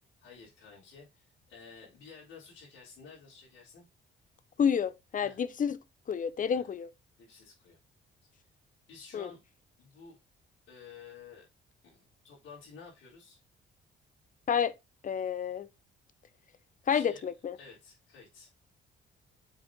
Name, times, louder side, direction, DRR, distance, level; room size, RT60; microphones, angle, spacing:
voice 1, 0.2-3.8 5.2-5.4 6.5-6.7 7.2-7.8 8.9-9.4 9.8-10.2 10.7-11.5 11.8-12.0 12.2-13.4 16.9-17.2 17.6-18.5, left 5 dB, 80° left, 4.2 m, -52 dB
voice 2, 4.6-5.8 6.1-6.9 9.1-9.3 14.5-14.7 15.0-15.7 16.9-17.6, left 7 dB, 40° left, 0.7 m, -29 dB
7.1 x 4.2 x 3.8 m
cardioid pair, 90°, 20 cm